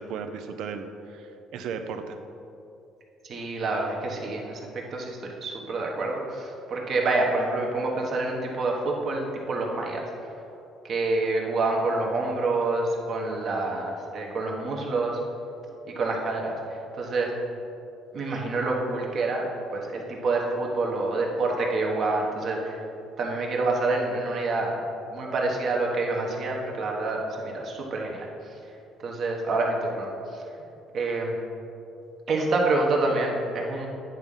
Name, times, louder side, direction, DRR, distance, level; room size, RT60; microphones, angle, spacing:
voice 1, 0.0-2.2, right 5 dB, 75° right, 7 dB, 0.6 m, -35 dB
voice 2, 3.2-10.0 10.8-15.2 15.9-16.5 17.0-17.3 18.1-19.4 19.7-22.8 23.2-24.8 25.1-28.3 29.0-30.4 30.9-31.4 32.3-33.9, right 2 dB, 50° right, 0 dB, 1.3 m, -27 dB
9.4 x 3.6 x 5.5 m, 2.7 s
cardioid pair, 110°, 0 cm